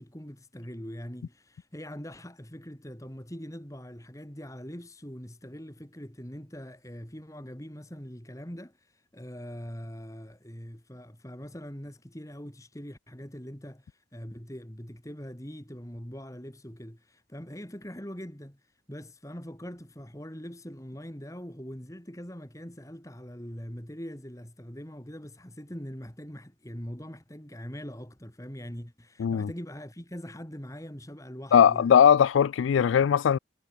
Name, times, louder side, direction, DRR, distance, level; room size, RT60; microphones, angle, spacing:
voice 1, 0.0-31.9, equal, 15° left, 3.1 m, -42 dB
voice 2, 31.5-33.4, left 8 dB, 85° left, 0.3 m, -20 dB
head